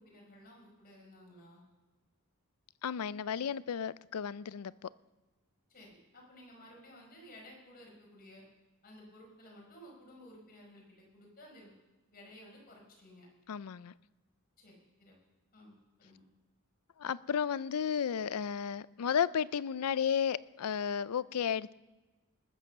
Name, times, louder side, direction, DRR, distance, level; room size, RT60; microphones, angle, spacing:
voice 1, 0.0-1.6 5.7-8.4 8.8-11.7 12.1-13.3 14.6-15.2 15.5-16.2, equal, 45° left, -1 dB, 5.0 m, -55 dB
voice 2, 2.8-4.9 13.5-13.9 17.0-21.7, left 7 dB, 85° left, 19 dB, 0.4 m, -33 dB
20.0 x 7.6 x 6.8 m, 1.2 s
head